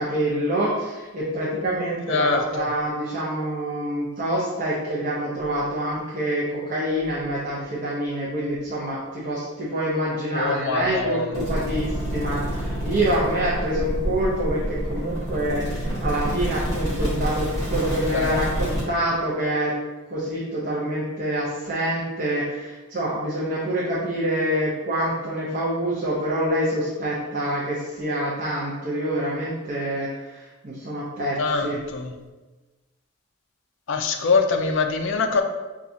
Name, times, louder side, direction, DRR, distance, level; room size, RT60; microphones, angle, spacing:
voice 1, 0.0-19.7 20.1-31.8, right 1 dB, 40° right, -6 dB, 0.6 m, -26 dB
voice 2, 2.1-2.7 10.3-11.3 11.7-11.8 18.1-18.8 31.4-32.1 33.9-35.4, left 4 dB, 60° left, 5 dB, 0.3 m, -24 dB
sound 1, 11.3-18.8, equal, 15° left, 1.0 m, -28 dB
4.3 x 2.4 x 2.6 m, 1.2 s
head